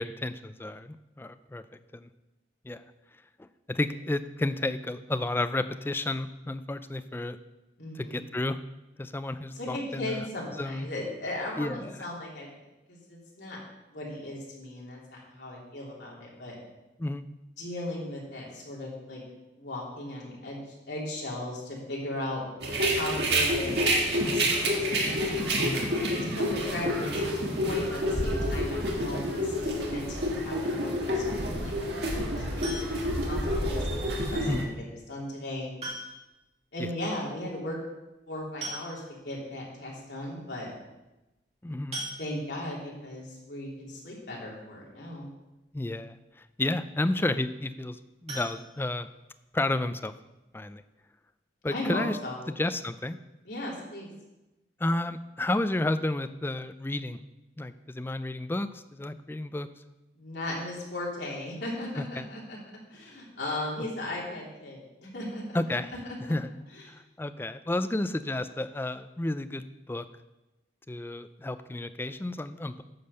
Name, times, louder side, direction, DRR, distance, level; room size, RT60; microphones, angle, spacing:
voice 1, 0.0-1.6 1.9-2.1 2.6-2.8 3.4-7.4 7.9-8.6 9.0-10.3 10.6-10.9 11.6-12.1 17.0-17.2 25.5-25.8 34.5-34.7 36.8-36.9 41.6-42.0 45.7-49.1 49.5-50.1 50.5-50.8 51.6-52.2 52.6-53.2 54.8-57.2 57.6-59.7 62.0-62.3 65.5-65.9 66.3-66.5 66.9-70.0 70.9-72.8, left 2 dB, 10° left, 11 dB, 0.3 m, -31 dB
voice 2, 7.8-8.2 9.5-12.5 12.9-13.6 13.9-16.5 17.6-19.2 19.6-22.4 22.9-25.4 26.1-32.5 32.7-34.0 34.3-34.5 35.1-35.7 36.7-37.8 38.3-40.7 42.2-45.3 51.7-52.5 53.4-54.1 60.2-62.6 62.9-65.6 66.7-66.8, left 1 dB, 70° left, -4 dB, 3.1 m, -37 dB
sound 1, 22.6-34.6, equal, 65° right, 1.8 m, -28 dB
sound 2, 32.6-33.2 34.7-34.8 35.8-36.4 36.7-36.8 37.1-37.2 38.2-38.3 38.6-39.3 39.9-40.0 40.3-40.5 41.9-42.7 48.2-49.4 49.8-49.9 50.3-50.4 50.8-50.9, right 1 dB, 35° right, 2.7 m, -40 dB
9.7 x 5.3 x 6.6 m, 1.0 s
head